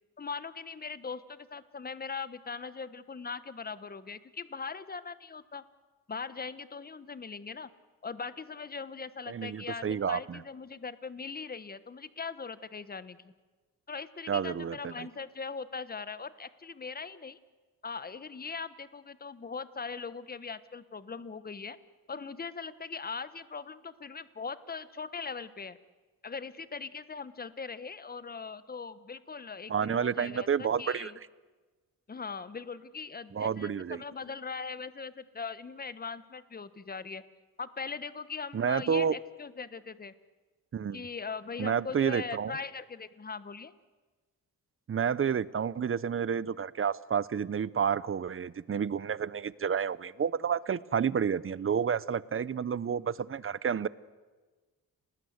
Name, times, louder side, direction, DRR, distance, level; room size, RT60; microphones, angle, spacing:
voice 1, 0.2-5.6 6.1-7.7 8.0-13.3 13.9-17.4 17.8-21.8 22.1-25.8 26.2-31.2 32.1-37.2 37.6-40.1 40.9-43.7, left 5 dB, 25° left, 15 dB, 1.1 m, -40 dB
voice 2, 9.3-10.4 14.3-15.1 29.7-31.1 33.3-34.0 38.5-39.1 40.7-41.1 41.6-42.6 44.9-53.9, right 7 dB, 35° right, 19 dB, 0.7 m, -30 dB
30.0 x 19.5 x 8.0 m, 1.3 s
cardioid pair, 100°, 37 cm